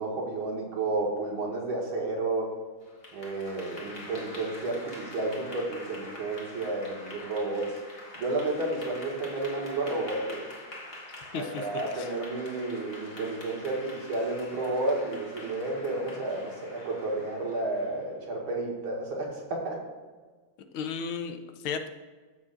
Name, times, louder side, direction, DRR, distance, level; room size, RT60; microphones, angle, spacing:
voice 1, 0.0-2.5 3.1-7.8 8.2-10.4 11.3-19.8, right 2 dB, 80° right, -2 dB, 2.7 m, -31 dB
Clapping / Applause, 2.8-18.1, left 1 dB, 30° left, 1.5 m, -45 dB
voice 2, 11.1-12.1 20.7-21.9, left 6 dB, 85° left, 7 dB, 1.6 m, -35 dB
13.5 x 7.2 x 2.5 m, 1.4 s
omnidirectional pair, 2.2 m